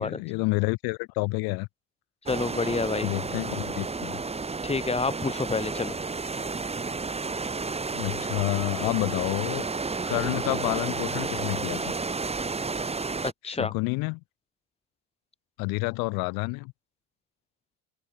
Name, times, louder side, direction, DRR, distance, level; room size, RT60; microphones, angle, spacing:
voice 1, 0.0-1.7 3.0-4.2 7.9-9.7 10.1-12.0 13.4-14.2 15.6-16.7, left 27 dB, 70° left, 2.4 m, -29 dB
voice 2, 2.3-3.1 4.6-6.0 13.2-13.7, left 4 dB, 15° left, 3.6 m, -28 dB
sound 1, 2.3-13.3, right 4 dB, 15° right, 3.4 m, -31 dB
open air
supercardioid pair, 110°, 38 cm